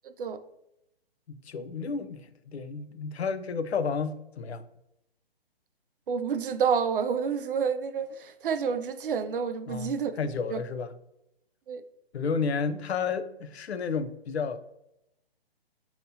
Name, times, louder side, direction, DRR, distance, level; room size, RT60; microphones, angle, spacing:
voice 1, 0.0-0.4 6.1-10.1 10.5-10.6 11.7-11.8, right 6 dB, 60° right, 0.4 m, -29 dB
voice 2, 1.3-4.6 9.7-10.9 12.1-14.6, left 5 dB, 90° left, 0.5 m, -31 dB
5.3 x 2.9 x 2.7 m
hypercardioid pair, 150°, 31 cm